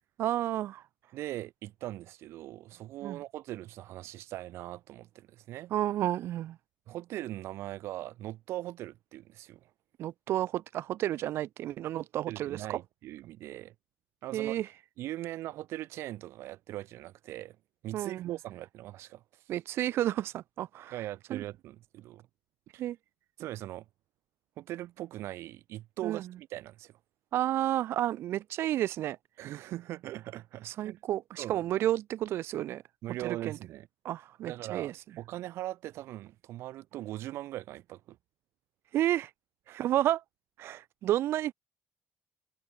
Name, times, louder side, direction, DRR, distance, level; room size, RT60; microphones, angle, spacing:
voice 1, 0.2-0.8 3.0-3.2 5.7-6.6 10.0-12.8 14.3-14.7 17.9-18.3 19.5-21.0 21.3-21.4 22.8-23.0 26.0-26.2 27.3-29.2 30.6-32.8 33.2-33.6 34.0-35.0 38.9-39.3 39.7-40.2 40.6-41.5, right 13 dB, 70° right, 1.0 m, -31 dB
voice 2, 1.1-5.7 6.9-9.7 12.3-13.7 14.2-14.6 15.0-17.6 17.8-19.4 20.9-22.3 22.7-22.9 23.4-23.8 24.6-27.0 29.4-31.0 31.4-31.6 33.0-33.9 34.4-38.2 39.7-39.8, right 15 dB, 90° right, 5.0 m, -40 dB
cardioid pair, 150°, 4 cm